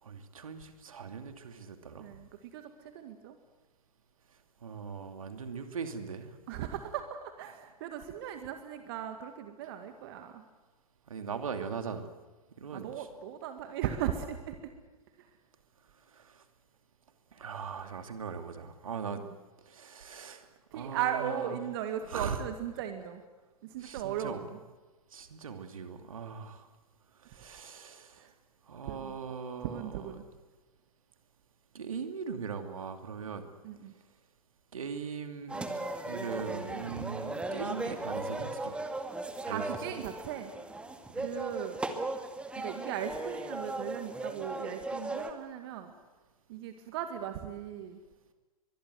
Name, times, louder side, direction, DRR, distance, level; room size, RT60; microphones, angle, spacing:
voice 1, 0.0-2.1 4.6-6.4 11.1-12.1 12.6-13.1 16.1-16.4 17.3-19.2 19.6-20.5 20.7-21.6 22.1-22.4 23.8-24.4 25.1-26.7 27.2-28.3 28.6-30.1 31.7-33.5 34.7-35.7 36.1-38.8 39.4-39.6 41.2-41.3, right 6 dB, 65° right, 7 dB, 2.7 m, -40 dB
voice 2, 2.0-3.4 6.5-10.4 12.7-14.7 15.2-15.3 20.7-23.2 23.6-24.6 28.2-28.3 28.9-29.2 29.6-30.3 33.6-33.9 39.5-40.5 41.2-41.8 42.6-45.9 46.5-48.0, right 10 dB, 40° right, 7 dB, 2.0 m, -37 dB
sound 1, 35.5-45.3, right 2 dB, 5° right, 1.9 m, -37 dB
24.0 x 22.0 x 8.1 m, 1.2 s
figure-of-eight pair, 110°, 19 cm